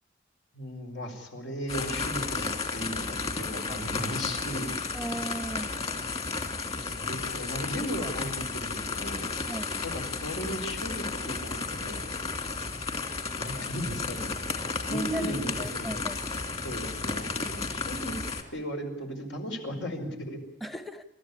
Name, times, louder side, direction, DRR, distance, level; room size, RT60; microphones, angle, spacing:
voice 1, 0.5-4.7 6.7-9.3 9.8-12.0 13.4-14.3 14.9-16.2 16.6-18.2 18.5-20.4, equal, 75° left, 4 dB, 5.1 m, -36 dB
sound 1, 1.7-18.4, left 4 dB, 35° left, 2.7 m, -33 dB
voice 2, 4.9-5.7 9.5-9.7 14.9-16.2 20.6-21.0, right 1 dB, ahead, 10 dB, 0.9 m, -36 dB
28.5 x 14.0 x 9.9 m, 0.83 s
head